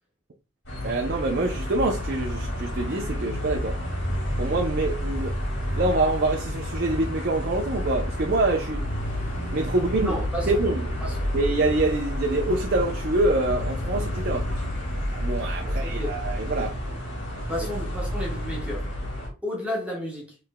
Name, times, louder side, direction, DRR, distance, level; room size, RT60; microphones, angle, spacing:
sound 1, 0.6-19.3, equal, 55° left, 2.4 m, -30 dB
voice 1, 0.8-3.8 4.4-5.4 5.8-8.9 9.5-10.2 10.5-10.9 11.3-14.5 15.1-16.7, right 2 dB, 50° right, 0.5 m, -25 dB
sound 2, 2.2-18.6, left 1 dB, 35° left, 0.8 m, -40 dB
voice 2, 10.0-10.7 11.0-11.2 15.6-16.2 17.5-18.9 19.4-20.4, equal, 5° right, 1.1 m, -32 dB
5.7 x 3.3 x 2.2 m
head